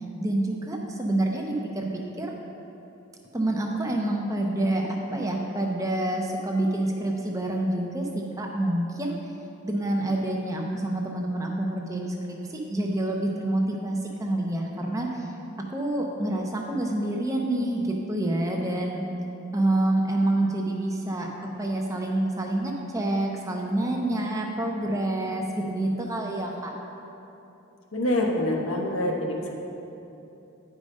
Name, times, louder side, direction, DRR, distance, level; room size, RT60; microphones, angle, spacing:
voice 1, 0.2-2.3 3.3-9.2 9.6-15.3 15.7-19.0 19.5-26.7, right 1 dB, 15° right, 0 dB, 0.6 m, -27 dB
voice 2, 27.9-29.5, left 1 dB, 75° left, 0 dB, 1.1 m, -26 dB
9.7 x 4.9 x 5.3 m, 2.9 s
head